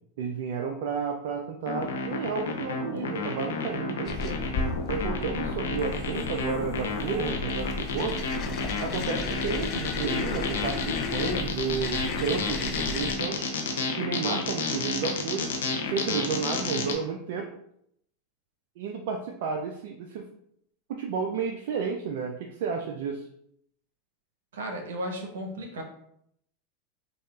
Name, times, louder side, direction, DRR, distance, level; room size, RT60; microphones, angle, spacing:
voice 1, 0.2-4.5 4.9-8.2 8.8-13.5 13.9-15.5 15.8-17.6 18.8-20.3 20.9-23.3, right 6 dB, 65° right, 2 dB, 0.4 m, -32 dB
sound 1, 1.7-16.9, left 4 dB, 85° left, 0.6 m, -31 dB
sound 2, 4.1-13.1, left 4 dB, 45° left, 0.4 m, -34 dB
voice 2, 24.5-25.8, right 1 dB, 85° right, 3 dB, 0.8 m, -34 dB
5.1 x 2.4 x 2.3 m, 0.71 s
hypercardioid pair, 110°, 0 cm